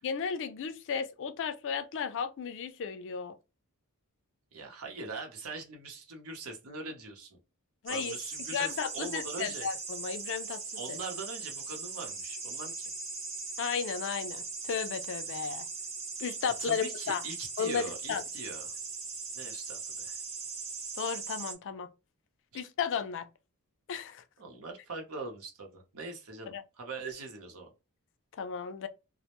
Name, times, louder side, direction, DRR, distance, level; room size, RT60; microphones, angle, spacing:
voice 1, 0.0-3.3 7.8-8.2 8.5-10.6 10.9-11.0 13.6-15.7 16.2-17.2 17.6-18.2 21.0-21.9 22.5-23.3 23.9-24.2 26.5-26.6 28.4-28.9, left 6 dB, 55° left, 0.4 m, -34 dB
voice 2, 4.5-7.4 7.9-9.7 10.8-12.9 16.6-18.8 19.3-20.2 22.5-22.6 24.4-27.7, right 3 dB, 70° right, 0.8 m, -42 dB
sound 1, 7.9-21.5, right 4 dB, 30° right, 0.6 m, -39 dB
2.1 x 2.1 x 2.9 m
head